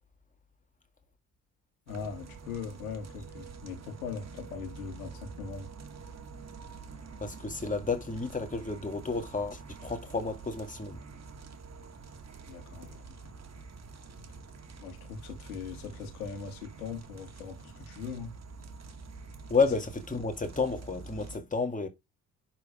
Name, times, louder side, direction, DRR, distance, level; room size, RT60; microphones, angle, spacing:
voice 1, 1.9-5.7 12.5-13.2 14.8-18.4, left 5 dB, 80° left, 2.4 m, -40 dB
sound 1, 1.9-21.4, right 4 dB, 35° right, 2.0 m, -47 dB
voice 2, 7.2-11.0 19.5-21.9, left 4 dB, 20° left, 2.3 m, -31 dB
10.5 x 4.5 x 5.0 m
figure-of-eight pair, 45°, 43 cm